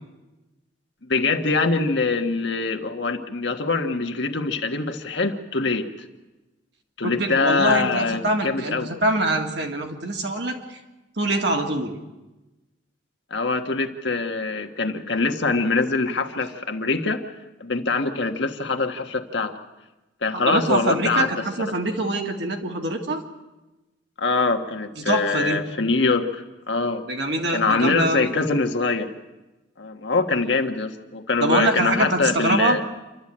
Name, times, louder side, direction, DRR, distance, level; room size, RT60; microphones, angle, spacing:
voice 1, 1.0-6.1 7.0-8.9 13.3-17.3 17.6-19.5 20.2-21.3 21.7-21.8 24.2-27.1 27.5-29.1 29.8-32.8, left 3 dB, 65° left, 6 dB, 1.5 m, -24 dB
voice 2, 7.0-10.8 11.2-11.9 20.3-23.2 25.0-25.6 27.1-28.3 31.4-32.8, right 1 dB, 60° right, 2 dB, 2.3 m, -24 dB
27.5 x 12.5 x 8.7 m, 1.1 s
head